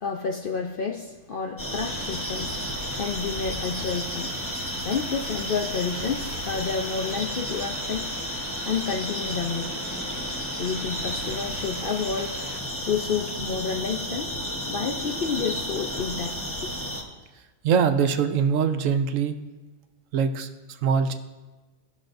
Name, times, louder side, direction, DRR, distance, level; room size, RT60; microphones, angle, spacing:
voice 1, 0.0-4.4 4.8-8.1 8.7-9.8 10.6-12.3 12.8-14.3 14.7-16.7, left 6 dB, 55° left, 3 dB, 0.6 m, -30 dB
sound 1, 1.6-17.0, equal, 10° left, 0.9 m, -32 dB
sound 2, 1.8-12.6, right 2 dB, 40° right, 1.2 m, -43 dB
voice 2, 17.6-19.4 20.1-21.1, right 6 dB, 75° right, 8 dB, 1.0 m, -23 dB
16.5 x 6.2 x 2.6 m, 1.2 s
omnidirectional pair, 1.4 m